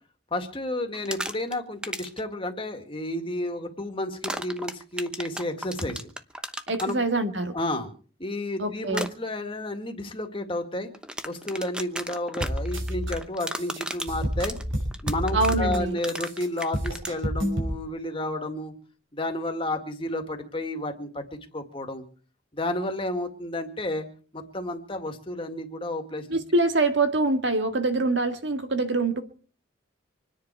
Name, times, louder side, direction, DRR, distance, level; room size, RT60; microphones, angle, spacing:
voice 1, 0.3-6.1 6.8-7.0 7.5-7.9 8.2-10.9 11.2-14.6 15.0-18.7 19.1-21.2 21.5-22.0 22.5-24.1 24.3-26.4, left 1 dB, 25° left, 5 dB, 2.1 m, -31 dB
sound 1, 0.9-1.5 1.8-2.2 4.2-6.9 8.9-9.1 10.9-17.1, right 1 dB, 5° right, 0.9 m, -34 dB
voice 2, 6.7-7.5 8.6-9.1 15.3-16.0 26.3-29.2, right 2 dB, 60° right, 7 dB, 2.0 m, -24 dB
sound 2, 12.4-13.1 13.4-15.8 16.1-17.7, equal, 80° right, 5.8 m, -29 dB
26.5 x 10.5 x 4.7 m, 0.40 s
head